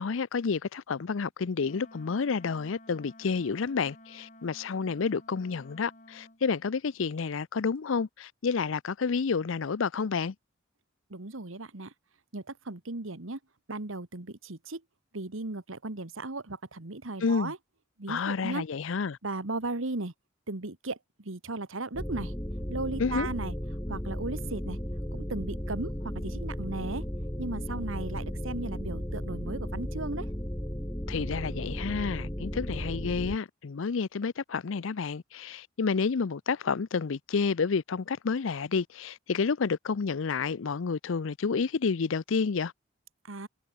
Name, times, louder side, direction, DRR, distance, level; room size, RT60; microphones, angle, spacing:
voice 1, 0.0-10.3 17.2-17.5 18.1-19.2 23.0-23.3 31.1-42.7, left 5 dB, 70° left, 0.5 m, -30 dB
Wind instrument woodwind instrument, 1.6-6.4, left 1 dB, 40° left, 7.7 m, -53 dB
voice 2, 11.1-11.9 12.3-13.4 13.7-14.8 15.1-17.6 18.0-18.6 19.2-20.1 20.5-22.3 22.7-23.5 23.9-24.8 25.1-27.0 27.4-30.3 43.3-43.5, right 2 dB, 75° right, 1.7 m, -36 dB
sound 1, 21.9-33.4, equal, 15° left, 1.7 m, -35 dB
head